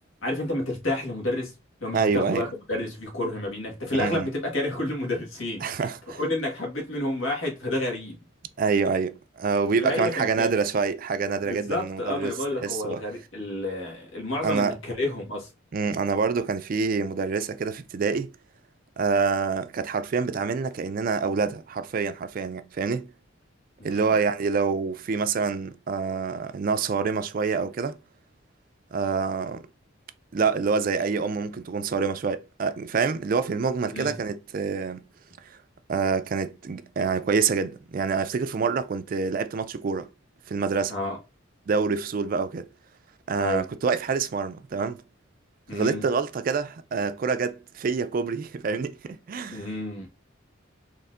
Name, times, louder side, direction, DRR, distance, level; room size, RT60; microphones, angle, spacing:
voice 1, 0.2-1.5 1.8-5.8 6.1-8.2 9.8-10.5 11.5-15.5 23.8-24.1 33.9-34.2 40.9-41.2 43.4-43.6 45.7-46.0 49.5-50.1, left 1 dB, 85° left, 1.7 m, -30 dB
voice 2, 1.9-2.4 3.9-4.3 5.6-6.2 8.6-12.3 12.6-13.0 14.4-14.7 15.7-18.3 19.0-23.1 23.8-28.0 28.9-29.6 30.3-35.0 35.9-40.1 40.5-40.9 41.7-42.7 43.3-45.0 45.7-49.6, right 5 dB, 45° right, 0.3 m, -26 dB
4.2 x 3.1 x 2.5 m
head